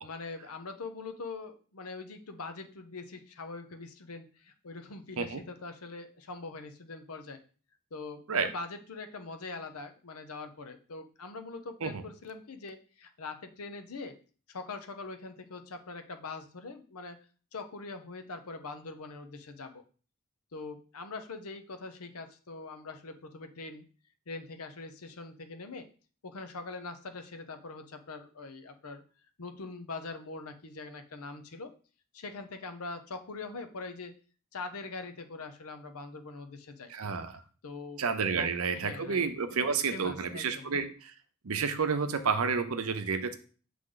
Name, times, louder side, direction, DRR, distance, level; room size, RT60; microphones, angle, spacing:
voice 1, 0.0-7.4 7.9-14.2 14.5-17.2 17.5-19.8 20.5-23.9 24.3-25.9 26.2-29.0 29.4-31.7 32.1-34.1 34.5-36.9 37.6-38.0 38.4-38.5 38.7-39.2 39.5-39.6 39.9-40.7, left 3 dB, 80° left, 8 dB, 0.8 m, -43 dB
voice 2, 36.9-37.4 38.0-41.1 41.4-43.3, right 5 dB, 70° right, 10 dB, 0.7 m, -30 dB
7.7 x 3.4 x 3.9 m, 0.39 s
head